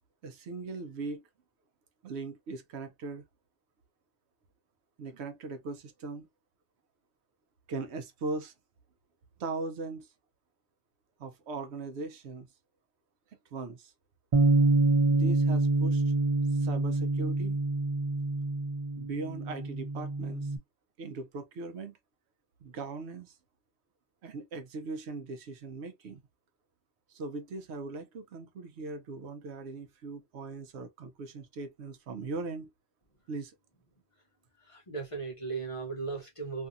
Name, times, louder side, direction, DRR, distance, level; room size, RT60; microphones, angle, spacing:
voice 1, 0.2-1.2 2.0-3.2 5.0-6.3 7.7-8.5 9.4-10.1 11.2-12.5 13.5-13.9 15.1-16.0 16.5-17.6 19.0-20.5 21.0-22.0 22.6-23.3 24.2-26.2 27.1-32.7 33.3-33.5, right 3 dB, 70° right, 0.9 m, -39 dB
Bass guitar, 14.3-20.6, right 2 dB, 50° right, 0.4 m, -26 dB
voice 2, 34.7-36.7, right 4 dB, 35° left, 0.7 m, -37 dB
2.7 x 2.4 x 2.5 m
omnidirectional pair, 1.2 m